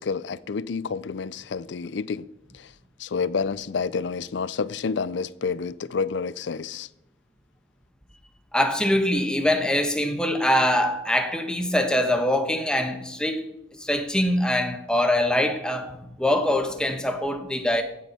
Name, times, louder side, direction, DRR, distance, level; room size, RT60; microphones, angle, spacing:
voice 1, 0.0-2.3 2.5-2.7 3.0-6.9, left 5 dB, 70° left, 0.4 m, -29 dB
voice 2, 8.5-17.8, left 1 dB, 5° left, 1.1 m, -23 dB
15.5 x 6.9 x 5.7 m
head